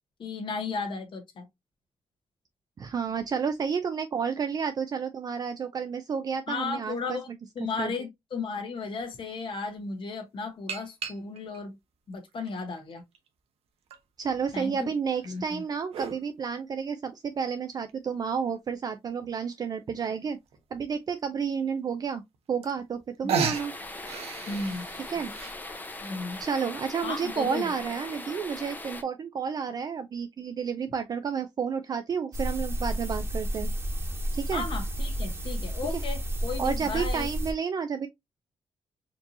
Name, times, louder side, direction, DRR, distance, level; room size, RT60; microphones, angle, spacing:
voice 1, 0.2-1.5 6.5-7.3 7.5-11.7 12.1-13.0 14.5-14.9 15.2-15.6 24.5-24.9 26.0-26.4 27.0-27.6 34.5-37.3, left 4 dB, 55° left, 1.2 m, -34 dB
voice 2, 2.8-7.2 7.8-7.9 14.2-20.4 20.7-22.2 22.5-23.7 25.1-25.3 26.4-33.7 34.3-34.6 36.6-38.1, right 6 dB, 40° right, 0.4 m, -31 dB
sound 1, 8.9-9.0 10.7-11.6 12.3-13.3 13.9-14.0 15.2-16.2 17.9-18.0 18.5-18.6 18.7-18.8 19.2-19.5 20.5-20.6 21.1-21.2 22.3-22.4 22.6-23.0 23.3-25.5, right 6 dB, 80° right, 0.9 m, -34 dB
sound 2, 23.5-29.0, left 2 dB, 20° left, 0.7 m, -40 dB
sound 3, 32.3-37.5, equal, 25° right, 1.2 m, -31 dB
4.4 x 2.8 x 2.7 m
cardioid pair, 130°, 10 cm